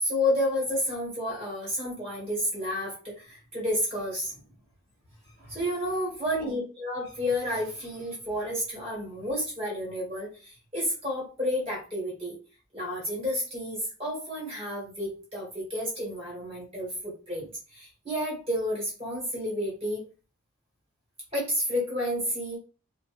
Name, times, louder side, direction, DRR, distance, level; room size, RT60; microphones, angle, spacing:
voice 1, 0.0-4.4 5.4-12.4 12.7-20.0 21.3-22.6, left 1 dB, 30° right, -3 dB, 1.4 m, -31 dB
2.8 x 2.5 x 2.9 m, 0.35 s
head